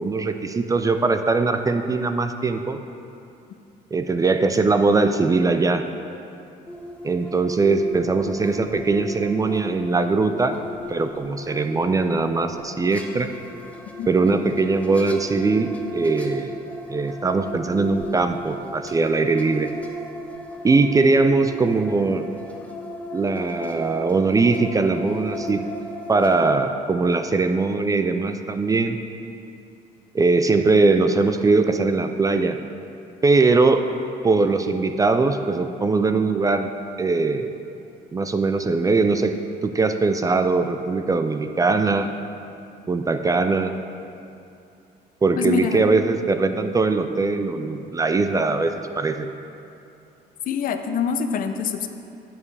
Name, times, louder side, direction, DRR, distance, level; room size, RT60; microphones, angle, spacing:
voice 1, 0.0-2.8 3.9-5.8 7.0-10.6 10.9-13.3 14.1-16.5 16.9-19.7 20.6-22.3 23.1-25.6 26.1-29.0 30.1-32.6 33.2-33.9 34.2-36.7 37.0-37.5 38.1-39.4 39.6-42.1 42.9-43.7 45.2-49.3, right 3 dB, 20° right, 8 dB, 0.4 m, -21 dB
sound 1, 6.7-26.5, left 1 dB, 10° left, 0.9 m, -36 dB
voice 2, 45.4-45.8 50.5-51.9, left 7 dB, 55° left, 8 dB, 0.6 m, -25 dB
10.5 x 7.2 x 3.3 m, 2.6 s
cardioid pair, 110°, 17 cm